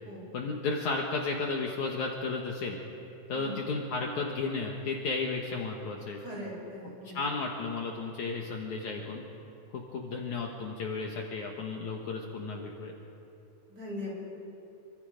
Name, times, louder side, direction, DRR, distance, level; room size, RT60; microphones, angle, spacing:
voice 1, 0.3-2.8 3.3-6.2 7.0-9.2 9.7-12.9, left 3 dB, 60° left, 0 dB, 2.5 m, -33 dB
voice 2, 6.2-7.2 13.7-14.1, left 1 dB, 25° right, -4 dB, 7.5 m, -40 dB
27.0 x 25.0 x 5.2 m, 2.8 s
omnidirectional pair, 4.3 m